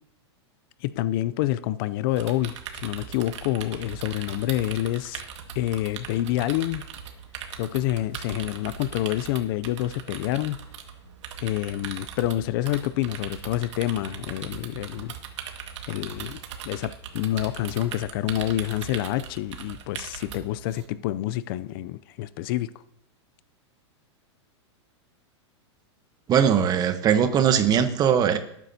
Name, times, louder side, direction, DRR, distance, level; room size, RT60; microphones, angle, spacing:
voice 1, 0.8-5.2 5.6-6.8 7.5-10.6 11.4-15.2 15.9-16.4 16.6-22.7, left 14 dB, 50° left, 0.4 m, -27 dB
sound 1, 2.2-20.9, right 7 dB, 80° right, 1.8 m, -40 dB
voice 2, 26.3-28.4, right 8 dB, 25° right, 1.0 m, -20 dB
18.5 x 9.1 x 2.8 m
supercardioid pair, 140°, 15 cm